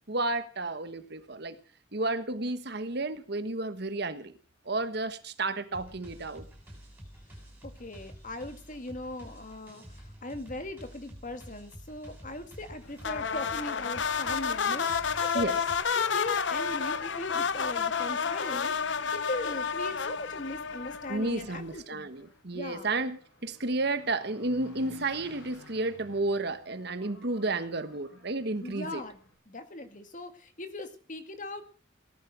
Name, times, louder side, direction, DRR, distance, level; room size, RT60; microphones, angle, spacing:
voice 1, 0.1-1.6 1.9-4.3 4.6-6.5 15.3-15.6 21.1-29.0, right 2 dB, 55° right, 11 dB, 1.3 m, -32 dB
sound 1, 5.7-15.8, equal, 10° right, 7.1 m, -49 dB
voice 2, 7.6-15.5 16.0-22.2 22.5-22.9 28.6-29.2 29.5-31.6, left 2 dB, 40° left, 8 dB, 1.9 m, -39 dB
sound 2, 13.0-21.5, left 6 dB, 65° left, 0.8 m, -30 dB
Engine, 20.7-29.3, left 1 dB, 90° left, 7.5 m, -55 dB
18.0 x 12.0 x 6.2 m, 0.42 s
head